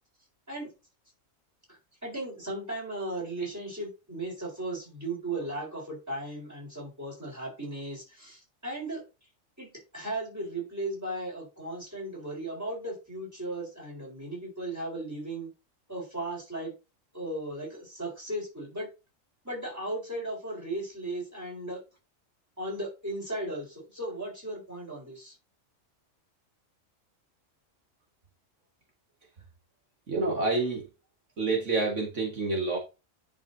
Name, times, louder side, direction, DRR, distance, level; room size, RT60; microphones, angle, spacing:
voice 1, 1.7-9.0 9.6-15.5 15.9-16.7 17.1-18.9 19.4-21.8 22.6-25.4, right 1 dB, 10° right, 4.4 m, -36 dB
voice 2, 30.1-30.8 31.4-32.8, right 3 dB, 65° right, 2.0 m, -28 dB
10.5 x 5.8 x 2.7 m
omnidirectional pair, 1.4 m